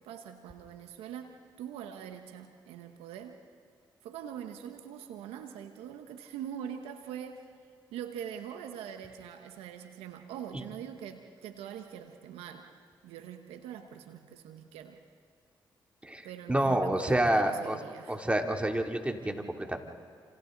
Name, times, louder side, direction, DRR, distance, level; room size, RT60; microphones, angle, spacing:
voice 1, 0.0-3.4 4.0-7.5 7.9-12.7 13.0-15.0 16.2-18.2, right 9 dB, 85° right, 6 dB, 1.2 m, -43 dB
voice 2, 16.0-17.8 18.1-19.8, right 1 dB, 10° right, 2 dB, 3.2 m, -28 dB
29.5 x 27.5 x 4.0 m, 2.3 s
hypercardioid pair, 40°, 10 cm